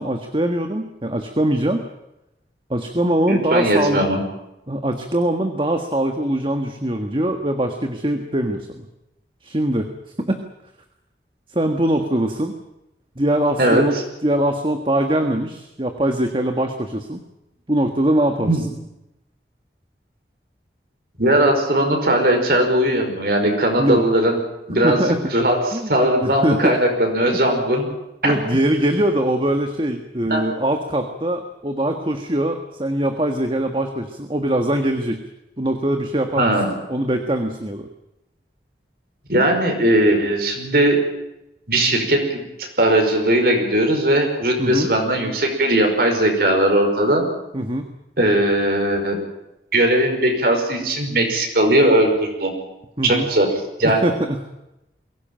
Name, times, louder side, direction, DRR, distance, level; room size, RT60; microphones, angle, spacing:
voice 1, 0.0-1.9 2.7-4.0 4.7-8.9 9.4-9.9 10.2-10.4 11.5-12.5 13.2-17.2 17.7-18.7 23.8-24.0 24.8-25.2 25.7-25.9 26.2-26.7 27.3-27.4 28.2-35.2 35.6-36.5 36.9-37.9 44.6-44.9 47.5-47.9 53.0-53.3 53.8-54.4, right 1 dB, 30° right, 6 dB, 1.6 m, -22 dB
voice 2, 3.3-4.2 13.6-13.9 18.4-18.7 21.2-24.4 24.7-25.0 25.3-27.9 28.2-28.3 30.3-30.4 36.4-36.7 39.3-41.0 41.7-47.3 48.2-49.2 49.7-52.5 53.0-53.5 53.8-54.0, right 1 dB, 55° right, 3 dB, 5.3 m, -18 dB
22.5 x 17.5 x 9.1 m, 0.90 s
head